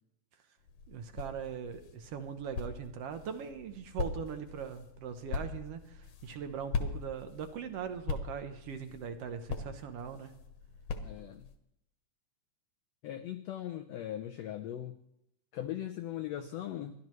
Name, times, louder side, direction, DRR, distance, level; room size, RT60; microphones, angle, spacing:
sound 1, 0.6-11.5, left 4 dB, 70° left, 2.5 m, -41 dB
voice 1, 0.9-10.3, right 7 dB, 75° right, 8 dB, 1.4 m, -40 dB
voice 2, 11.0-11.5 13.0-15.0 15.5-16.9, left 11 dB, 90° left, 7 dB, 1.4 m, -39 dB
30.0 x 12.0 x 3.2 m, 0.80 s
omnidirectional pair, 3.8 m